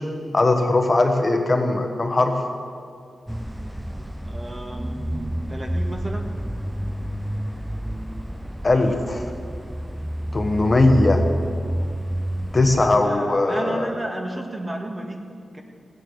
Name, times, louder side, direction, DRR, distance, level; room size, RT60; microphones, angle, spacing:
voice 1, 0.3-2.3 8.6-9.2 10.3-11.2 12.5-13.9, left 2 dB, 35° left, 4 dB, 1.3 m, -19 dB
sound 1, 3.3-13.0, equal, 5° right, 0.6 m, -29 dB
voice 2, 4.3-6.4 12.8-15.2 15.5-15.6, right 1 dB, 25° right, 2 dB, 2.0 m, -32 dB
16.5 x 9.3 x 7.9 m, 2.3 s
wide cardioid pair, 90°, 0 cm